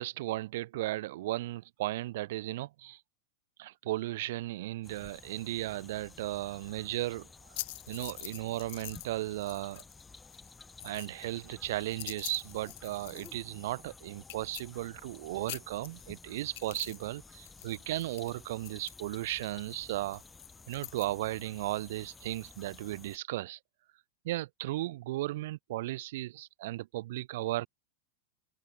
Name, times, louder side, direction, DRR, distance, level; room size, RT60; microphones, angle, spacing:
voice 1, 0.0-3.0 3.6-7.3 7.9-9.8 10.8-20.2 20.7-23.6 24.2-27.7, right 16 dB, 55° right, 1.1 m, -35 dB
sound 1, 4.8-23.2, left 4 dB, 10° left, 1.5 m, -53 dB
sound 2, 7.5-9.1 9.4-10.0 10.3-13.5 13.8-13.9 14.2-15.2 15.4-17.1 17.3-21.1, left 19 dB, 50° left, 3.6 m, -45 dB
open air
figure-of-eight pair, 90°, 0 cm